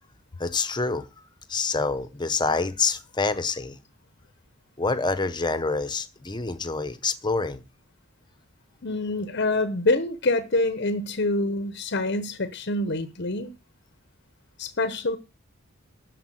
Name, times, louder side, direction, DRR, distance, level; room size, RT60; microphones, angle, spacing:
voice 1, 0.4-1.1 1.5-3.8 4.8-7.6, left 4 dB, 20° left, 0.9 m, -27 dB
voice 2, 8.8-13.5 14.6-15.2, left 2 dB, 50° left, 0.9 m, -26 dB
12.5 x 4.7 x 7.6 m
head